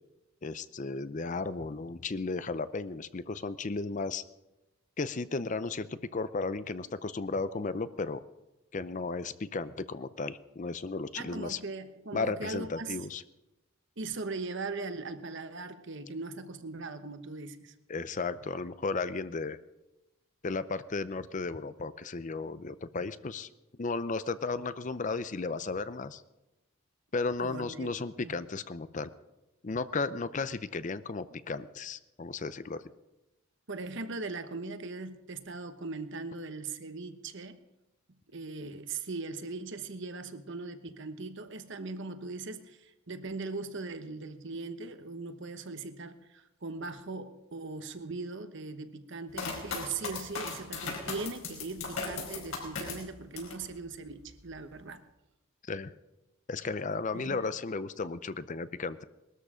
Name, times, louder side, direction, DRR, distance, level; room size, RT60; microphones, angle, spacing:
voice 1, 0.4-4.2 5.0-8.2 8.7-11.6 12.1-13.2 17.9-19.6 20.4-23.5 23.8-26.2 27.1-29.1 29.6-32.8 55.7-55.9 56.5-59.0, left 3 dB, 35° left, 14 dB, 0.5 m, -34 dB
voice 2, 11.1-13.0 14.0-17.7 27.4-27.9 28.2-28.4 33.7-37.6 38.3-55.0 57.1-57.4, right 3 dB, 60° right, 9 dB, 1.1 m, -39 dB
sound 1, 49.3-53.6 54.1-54.7, left 4 dB, 70° left, 4.8 m, -37 dB
20.5 x 13.0 x 5.0 m, 0.99 s
head